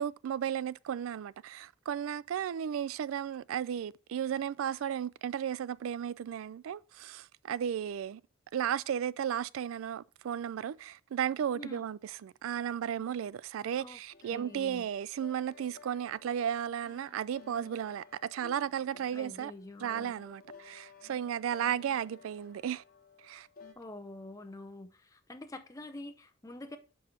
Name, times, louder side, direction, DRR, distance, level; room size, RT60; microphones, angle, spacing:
voice 1, 0.0-8.2 8.5-19.5 19.8-22.8 23.2-23.5, right 9 dB, 75° right, 0.3 m, -34 dB
voice 2, 11.5-11.9 13.8-14.0 14.3-14.9 19.1-20.1 23.8-26.8, left 2 dB, 15° left, 0.6 m, -46 dB
sound 1, 14.1-23.7, left 4 dB, 45° left, 1.0 m, -56 dB
5.4 x 5.0 x 5.8 m
head